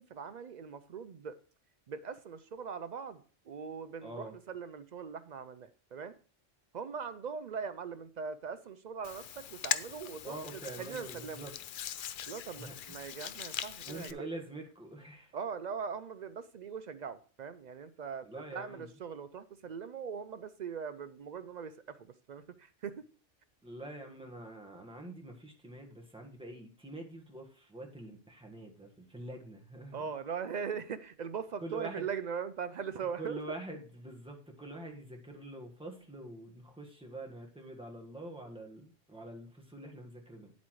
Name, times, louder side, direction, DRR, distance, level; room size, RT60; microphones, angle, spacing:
voice 1, 0.0-1.4 1.9-6.2 6.7-10.4 10.8-11.5 12.3-14.2 15.3-23.1 29.9-33.4, right 6 dB, 65° right, 12 dB, 0.4 m, -41 dB
voice 2, 4.0-4.3 10.2-11.5 12.6-12.9 13.8-15.3 18.2-18.9 23.6-30.1 31.6-32.0 33.2-40.5, right 2 dB, 5° right, 1 dB, 1.4 m, -45 dB
Hands, 9.0-14.1, left 9 dB, 60° left, 0.6 m, -40 dB
9.7 x 8.1 x 3.1 m, 0.41 s
omnidirectional pair, 1.3 m